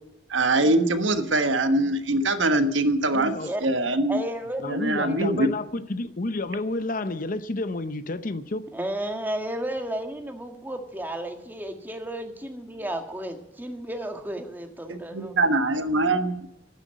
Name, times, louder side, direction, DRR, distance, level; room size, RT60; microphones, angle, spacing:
voice 1, 0.3-4.2 4.7-5.5 14.9-16.5, right 2 dB, 80° right, 1.3 m, -23 dB
voice 2, 3.1-3.5 4.6-8.7, left 2 dB, 45° left, 0.7 m, -30 dB
voice 3, 4.1-5.4 8.7-15.4, right 1 dB, 10° right, 1.7 m, -33 dB
12.5 x 9.5 x 9.1 m
head